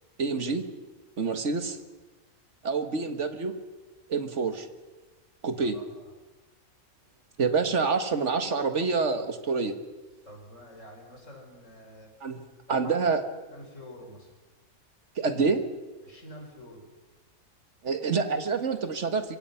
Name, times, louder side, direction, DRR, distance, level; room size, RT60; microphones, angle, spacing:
voice 1, 0.2-0.6 1.2-1.8 2.6-3.5 4.1-4.7 5.4-5.8 7.4-9.8 12.2-12.4 12.7-13.2 15.2-15.6 17.8-19.4, right 4 dB, 55° right, 8 dB, 1.9 m, -27 dB
voice 2, 5.6-6.1 10.3-12.1 12.7-12.9 13.5-14.3 16.0-16.9, equal, 60° left, 1 dB, 5.7 m, -47 dB
26.5 x 24.5 x 5.8 m, 1.2 s
omnidirectional pair, 1.5 m